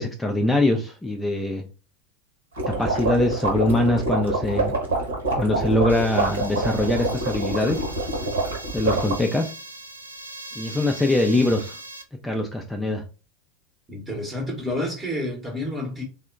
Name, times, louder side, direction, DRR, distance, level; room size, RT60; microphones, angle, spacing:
voice 1, 0.0-1.6 2.8-4.7 5.3-7.8 8.7-9.5 10.6-11.8 12.2-13.0, left 1 dB, 10° left, 0.3 m, -23 dB
sound 1, 2.6-9.2, right 2 dB, 65° right, 0.9 m, -26 dB
sound 2, 5.9-12.0, right 2 dB, 85° right, 0.3 m, -40 dB
voice 2, 13.9-16.0, left 1 dB, 15° right, 0.8 m, -29 dB
3.5 x 2.1 x 2.4 m
figure-of-eight pair, 80°, 0 cm